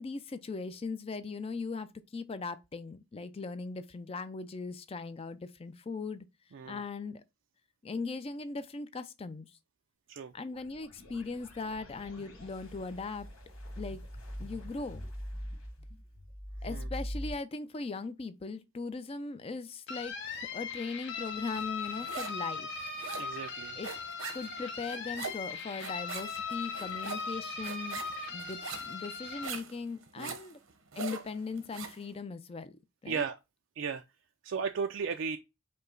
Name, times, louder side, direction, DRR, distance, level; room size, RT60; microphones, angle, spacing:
voice 1, 0.0-6.3 6.7-7.2 7.8-9.5 10.3-13.3 13.8-14.0 14.4-15.0 16.6-22.7 23.8-23.9 24.3-28.0 28.3-30.6 31.0-32.8 33.0-33.3, left 4 dB, 30° left, 0.4 m, -39 dB
sound 1, 10.5-17.3, equal, 90° left, 1.5 m, -43 dB
sound 2, 19.9-29.5, left 5 dB, 55° left, 0.9 m, -39 dB
sound 3, 21.6-22.5 22.7-32.0, right 5 dB, 80° right, 0.9 m, -43 dB
voice 2, 23.2-23.8 30.2-30.4 33.1-33.4 33.8-34.0 34.4-35.4, right 5 dB, 60° right, 0.4 m, -35 dB
5.4 x 2.1 x 3.8 m
head